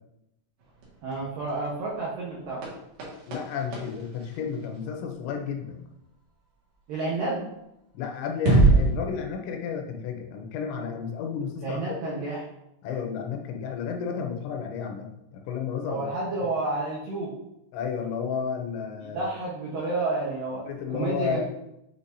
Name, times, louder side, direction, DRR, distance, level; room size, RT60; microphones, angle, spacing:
sound 1, 0.6-5.3 7.5-7.6 8.3-8.9, right 3 dB, 65° right, 3.5 m, -26 dB
voice 1, 1.0-2.6 6.9-7.4 11.6-12.4 15.9-17.3 19.0-20.7 20.9-21.4, right 2 dB, 80° right, -4 dB, 2.0 m, -30 dB
voice 2, 3.3-5.8 7.9-12.2 12.8-16.0 17.7-19.3 20.7-21.4, left 7 dB, 80° left, 3 dB, 3.0 m, -32 dB
8.6 x 4.6 x 2.6 m, 0.85 s
omnidirectional pair, 5.5 m